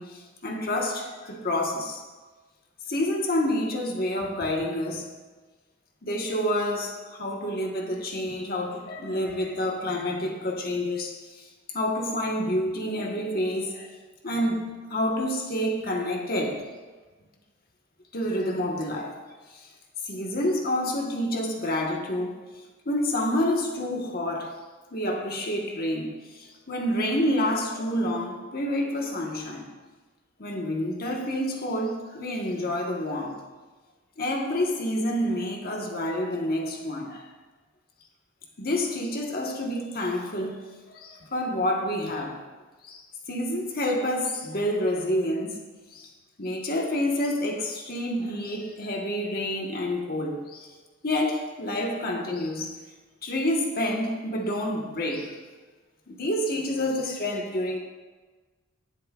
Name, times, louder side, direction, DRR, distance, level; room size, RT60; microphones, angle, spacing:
voice 1, 0.0-2.0 2.9-5.1 6.0-11.5 11.7-13.9 14.2-16.6 18.1-19.2 19.5-19.7 20.0-22.4 22.8-24.6 24.9-29.7 30.4-33.4 34.2-37.3 38.6-40.6 40.9-42.4 42.8-45.6 45.9-46.1 46.4-50.7 51.0-52.7 53.2-55.3 56.1-57.8, left 1 dB, 45° left, 1 dB, 1.4 m, -28 dB
18.5 x 7.4 x 2.5 m, 1.3 s
head